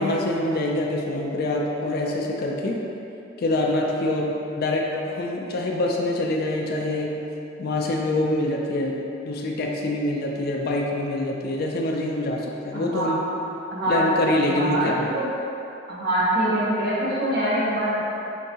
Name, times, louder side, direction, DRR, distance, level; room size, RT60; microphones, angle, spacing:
voice 1, 0.0-2.8 3.4-7.3 7.6-9.0 9.3-13.2 13.9-15.1, left 1 dB, 50° left, -1 dB, 0.3 m, -25 dB
voice 2, 12.7-13.1 13.7-14.0 14.5-15.3 15.9-18.0, right 1 dB, 55° right, -9 dB, 0.8 m, -24 dB
4.4 x 3.2 x 2.8 m, 2.9 s
head